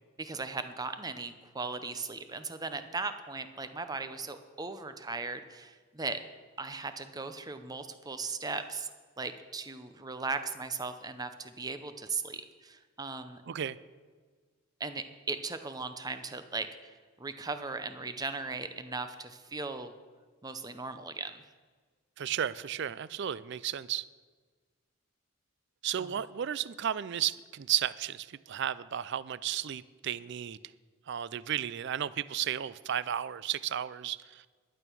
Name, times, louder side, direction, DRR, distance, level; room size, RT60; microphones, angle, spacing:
voice 1, 0.2-6.2 6.6-8.9 9.2-13.4 14.8-19.9 20.4-21.4 26.0-26.2, right 4 dB, 15° right, 9 dB, 0.7 m, -38 dB
voice 2, 22.2-24.0 25.8-30.6 31.1-34.4, right 10 dB, 55° right, 18 dB, 0.4 m, -33 dB
12.0 x 9.1 x 6.1 m, 1.5 s
head